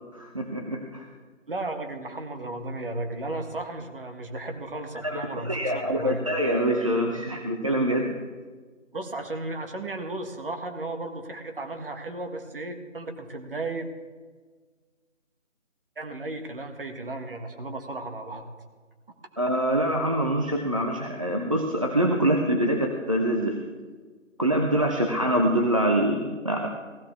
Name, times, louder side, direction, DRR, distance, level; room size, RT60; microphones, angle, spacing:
voice 1, 0.1-1.1 5.0-8.1 19.4-23.6 24.4-26.7, right 1 dB, 25° right, 1 dB, 0.7 m, -25 dB
voice 2, 1.5-6.2 8.9-13.9 15.9-18.5, right 2 dB, 45° right, 5 dB, 1.7 m, -34 dB
16.5 x 15.0 x 3.6 m, 1.4 s
figure-of-eight pair, 160°, 39 cm